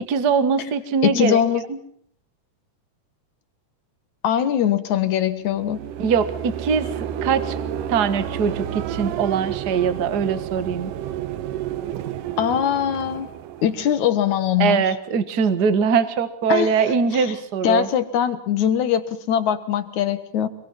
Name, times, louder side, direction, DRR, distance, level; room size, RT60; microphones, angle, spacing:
voice 1, 0.1-1.4 1.7-1.8 6.0-6.9 7.2-7.5 7.9-10.9 14.6-17.9, right 6 dB, 40° right, 12 dB, 1.6 m, -22 dB
voice 2, 1.0-1.6 4.2-5.8 12.4-13.3 13.6-14.8 16.5-16.7 17.1-17.3 17.6-20.5, left 9 dB, 65° left, 12 dB, 2.7 m, -21 dB
sound 1, 5.5-14.5, right 10 dB, 85° right, 2.7 m, -31 dB
25.5 x 23.0 x 5.6 m, 0.63 s
omnidirectional pair, 3.7 m